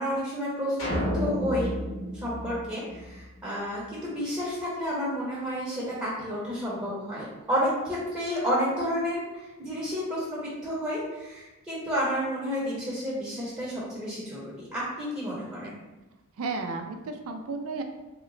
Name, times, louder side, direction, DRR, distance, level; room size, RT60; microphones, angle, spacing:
voice 1, 0.0-1.7 2.1-15.7, equal, 15° right, -7 dB, 0.7 m, -31 dB
sound 1, 0.8-3.3, equal, 90° left, 1.4 m, -31 dB
voice 2, 16.4-17.8, right 3 dB, 80° right, 5 dB, 0.4 m, -33 dB
2.9 x 2.1 x 3.8 m, 1.1 s
head